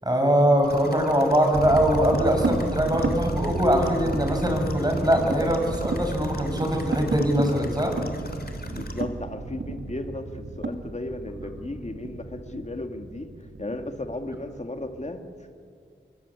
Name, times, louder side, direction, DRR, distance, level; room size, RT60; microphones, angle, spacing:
voice 1, 0.0-7.9, equal, 20° right, 3 dB, 6.7 m, -22 dB
sound 1, 0.6-9.0, left 2 dB, 50° left, 3.2 m, -41 dB
sound 2, 1.5-15.2, right 3 dB, 70° right, 2.0 m, -32 dB
voice 2, 8.7-13.3 13.6-15.2, left 2 dB, 35° left, 5 dB, 2.4 m, -35 dB
27.5 x 23.5 x 8.5 m, 2.3 s
wide cardioid pair, 55°, 21 cm